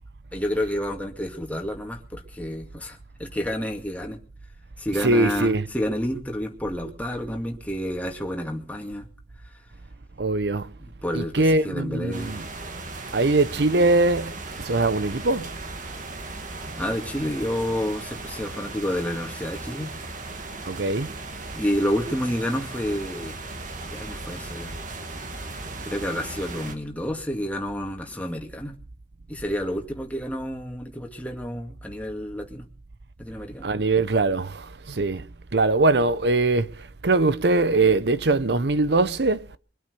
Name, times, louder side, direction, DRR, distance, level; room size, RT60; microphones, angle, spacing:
voice 1, 0.3-4.2 4.8-9.0 10.8-12.4 16.8-19.9 21.5-23.4 23.9-24.7 25.8-28.7 29.3-32.7 33.2-33.7, equal, 10° left, 2.2 m, -29 dB
voice 2, 5.0-5.6 10.2-10.7 11.1-12.4 13.1-14.4 14.6-15.5 20.7-21.1 33.6-35.3 35.5-36.7 37.0-39.4, right 2 dB, 65° right, 0.8 m, -21 dB
sound 1, 12.1-26.7, right 2 dB, 45° right, 2.0 m, -37 dB
23.5 x 8.9 x 6.8 m
head